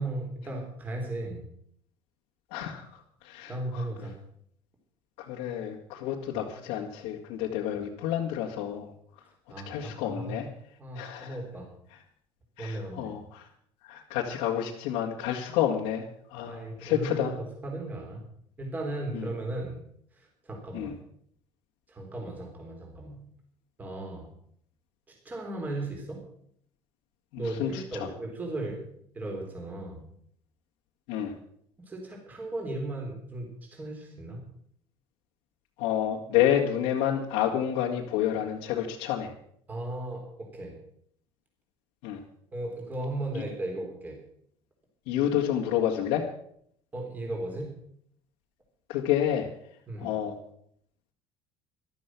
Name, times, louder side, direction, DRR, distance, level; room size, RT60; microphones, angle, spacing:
voice 1, 0.0-1.5 3.5-4.2 6.3-6.5 7.7-7.8 9.5-10.4 10.8-11.7 12.6-13.1 16.4-18.2 18.6-19.8 20.2-20.9 21.9-23.2 23.8-24.3 25.1-26.2 27.4-28.8 29.1-30.0 31.9-34.4 39.7-40.8 42.5-44.2 46.9-47.7 49.9-50.1, right 2 dB, 20° right, 1 dB, 3.8 m, -36 dB
voice 2, 2.5-3.8 5.2-8.9 9.7-10.5 10.9-11.4 12.6-13.4 13.8-16.0 16.3-17.3 19.1-19.3 20.7-20.9 27.3-28.1 31.1-31.3 35.8-39.3 42.0-42.2 45.1-46.2 48.9-49.5 50.0-50.4, left 10 dB, 90° left, -2 dB, 2.1 m, -29 dB
14.0 x 12.5 x 6.2 m, 0.67 s
cardioid pair, 165°, 9 cm